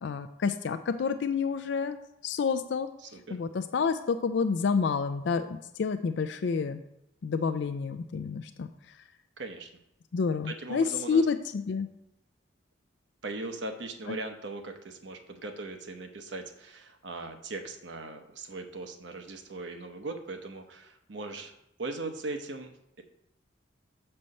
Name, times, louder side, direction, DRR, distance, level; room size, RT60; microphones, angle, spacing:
voice 1, 0.0-2.0 2.2-6.8 7.2-8.7 10.1-11.9 14.1-14.2, left 5 dB, 65° left, 8 dB, 0.4 m, -29 dB
voice 2, 3.0-3.4 9.4-9.7 10.4-11.3 13.2-21.5 21.8-23.0, right 3 dB, 65° right, 5 dB, 0.9 m, -39 dB
7.5 x 4.4 x 5.4 m, 0.83 s
head